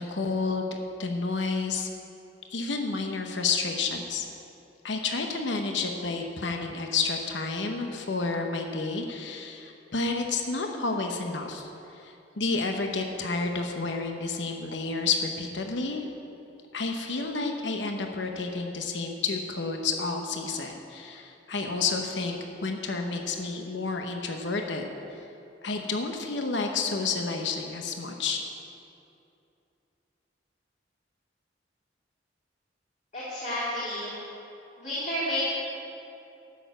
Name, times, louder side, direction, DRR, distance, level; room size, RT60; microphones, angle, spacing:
voice 1, 0.0-1.9 2.5-4.3 4.8-16.0 16.7-24.9 25.6-28.4, left 4 dB, 70° left, 3 dB, 0.9 m, -30 dB
voice 2, 33.1-34.2 34.8-35.5, left 1 dB, 40° left, -10 dB, 2.6 m, -31 dB
12.0 x 6.6 x 7.8 m, 2.7 s
head